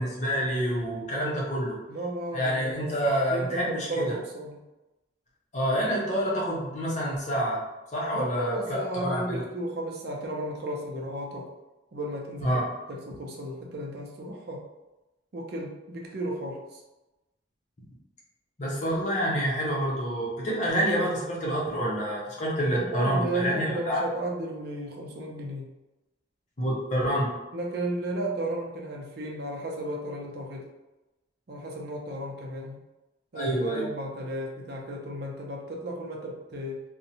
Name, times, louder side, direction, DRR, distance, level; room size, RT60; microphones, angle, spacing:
voice 1, 0.0-1.8 2.3-4.1 5.5-7.6 7.9-8.5 9.0-9.4 12.4-12.6 17.8-17.9 18.6-24.0 26.6-27.3 33.3-33.9, equal, 40° left, -5 dB, 0.7 m, -27 dB
voice 2, 1.9-4.6 8.1-11.5 11.9-12.5 12.9-14.6 15.3-16.8 22.8-25.7 27.5-30.7 31.5-32.8 33.3-36.8, right 1 dB, 55° right, 0 dB, 0.5 m, -34 dB
2.6 x 2.1 x 2.7 m, 1.0 s
head